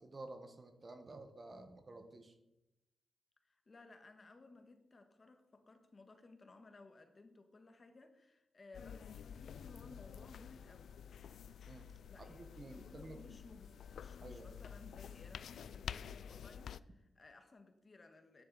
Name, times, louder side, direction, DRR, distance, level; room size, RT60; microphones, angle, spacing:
voice 1, 0.0-2.3 11.7-11.9 12.2-13.2 14.2-14.6, right 2 dB, 30° right, 7 dB, 1.2 m, -52 dB
voice 2, 3.4-10.9 12.1-18.4, left 3 dB, 30° left, 7 dB, 1.3 m, -59 dB
sound 1, 8.7-16.8, left 8 dB, 80° left, 0.3 m, -50 dB
12.0 x 10.0 x 4.0 m, 0.91 s
wide cardioid pair, 135°, 0 cm